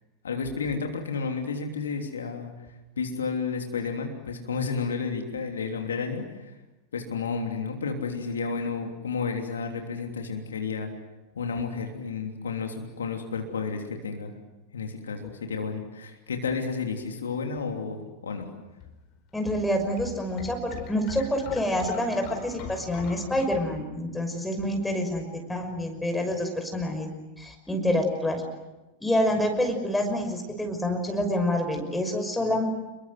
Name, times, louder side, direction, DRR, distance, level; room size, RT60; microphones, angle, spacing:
voice 1, 0.2-2.5 3.0-6.6 6.9-10.9 11.3-14.3 14.7-18.5, left 5 dB, 70° left, 3 dB, 3.1 m, -31 dB
sound 1, 18.8-23.4, left 6 dB, 40° left, 4.7 m, -41 dB
voice 2, 19.3-27.1 27.4-28.4 29.0-32.6, left 1 dB, 5° left, 4 dB, 5.9 m, -27 dB
29.5 x 22.5 x 7.9 m, 1.1 s
figure-of-eight pair, 90°, 0 cm